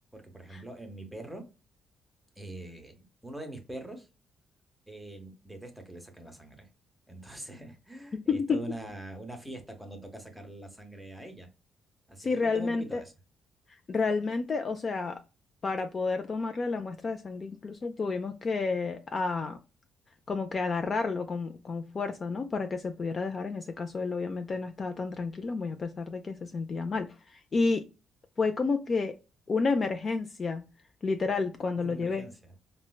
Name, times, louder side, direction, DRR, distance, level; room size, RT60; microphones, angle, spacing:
voice 1, 0.1-1.4 2.4-4.1 4.9-6.7 7.1-11.5 12.1-13.1 31.8-32.5, right 1 dB, ahead, 0.8 m, -43 dB
voice 2, 8.1-8.6 12.2-13.0 13.9-15.2 15.6-19.6 20.3-27.9 28.4-29.1 29.5-30.6 31.0-32.3, left 4 dB, 35° left, 0.3 m, -30 dB
4.3 x 2.1 x 2.2 m
cardioid pair, 135°, 0 cm